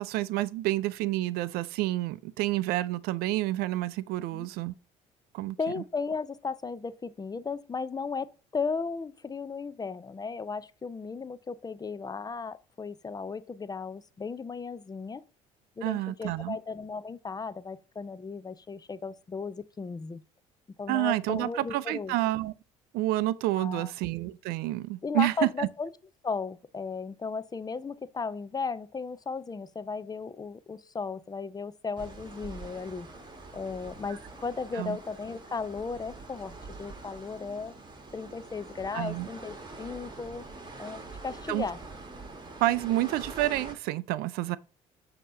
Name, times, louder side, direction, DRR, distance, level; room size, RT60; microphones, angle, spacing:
voice 1, 0.0-4.7 5.3-5.6 15.8-16.6 20.9-22.5 22.9-25.7 34.8-35.0 38.9-39.3 41.5-41.6 42.6-44.6, right 16 dB, 70° right, 0.4 m, -29 dB
voice 2, 5.6-15.2 15.8-20.2 20.8-22.2 23.5-23.9 25.0-25.9 26.2-33.1 33.5-37.7 38.1-40.5 40.8-41.8, left 4 dB, 25° left, 0.5 m, -35 dB
sound 1, 32.0-43.7, right 3 dB, 25° right, 1.8 m, -45 dB
7.1 x 2.9 x 5.5 m
hypercardioid pair, 65°, 17 cm